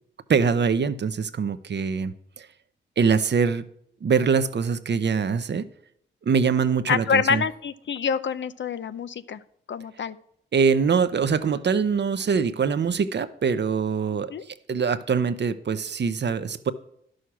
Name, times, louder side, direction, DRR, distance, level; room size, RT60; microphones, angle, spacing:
voice 1, 0.3-2.5 3.0-3.7 4.0-5.7 6.2-7.4 10.5-16.7, right 6 dB, 55° right, 12 dB, 0.8 m, -23 dB
voice 2, 6.9-9.4 9.7-10.2 14.3-14.4, left 6 dB, 60° left, 14 dB, 0.6 m, -26 dB
11.0 x 6.5 x 5.8 m, 0.70 s
supercardioid pair, 40°, 21 cm